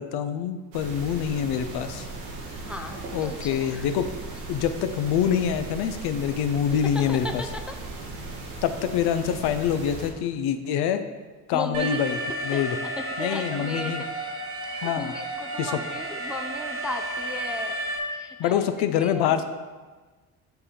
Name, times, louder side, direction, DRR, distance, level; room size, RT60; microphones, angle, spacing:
voice 1, 0.0-2.1 3.1-4.1 4.5-7.4 8.6-11.0 11.5-12.8 13.2-14.0 14.8-15.1 15.6-15.8 18.4-19.4, left 8 dB, 65° left, 9 dB, 0.6 m, -25 dB
sound 1, 0.7-10.1, right 2 dB, 85° right, 1.3 m, -38 dB
voice 2, 2.6-3.9 6.8-7.8 11.5-12.0 12.5-12.6 13.0-14.1 14.6-17.8 18.1-18.6 19.0-19.4, left 2 dB, 5° right, 5 dB, 0.4 m, -36 dB
Alarm, 11.7-18.0, right 1 dB, 60° right, 1.1 m, -32 dB
7.7 x 3.6 x 4.3 m, 1.3 s
hypercardioid pair, 60°, 42 cm